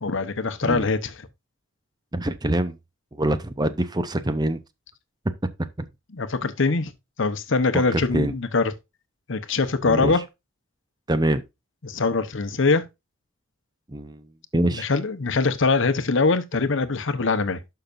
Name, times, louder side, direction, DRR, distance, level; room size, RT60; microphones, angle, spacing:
voice 1, 0.0-1.3 6.1-6.9 7.2-8.7 9.3-10.2 11.8-12.8 14.5-17.6, left 4 dB, 65° left, 0.9 m, -23 dB
voice 2, 2.1-2.8 3.2-4.6 7.9-8.3 9.8-10.1 11.1-11.4 13.9-14.2 14.5-14.8, right 1 dB, 20° right, 0.7 m, -24 dB
12.0 x 5.8 x 2.5 m
head